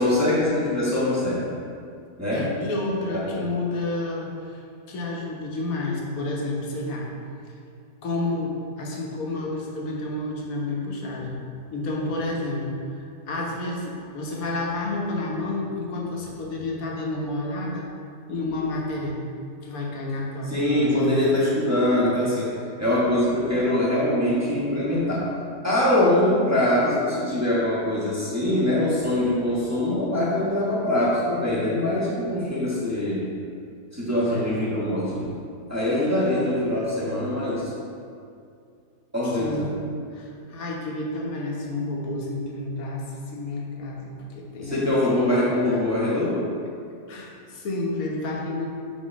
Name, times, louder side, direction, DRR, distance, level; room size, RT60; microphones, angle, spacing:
voice 1, 0.0-1.4 2.2-2.5 3.1-3.4 20.5-22.5 22.8-25.3 25.6-33.2 33.9-35.3 35.7-37.7 39.1-39.7 44.6-46.4, left 1 dB, 10° right, -9 dB, 1.4 m, -23 dB
voice 2, 2.3-4.6 4.9-7.1 8.0-11.4 11.7-17.9 18.3-19.2 19.6-21.1 34.3-34.6 39.2-39.7 40.1-43.1 43.3-45.0 45.2-45.3 47.1-48.7, left 2 dB, 60° left, -2 dB, 1.4 m, -30 dB
5.6 x 4.4 x 5.1 m, 2.4 s
omnidirectional pair, 1.7 m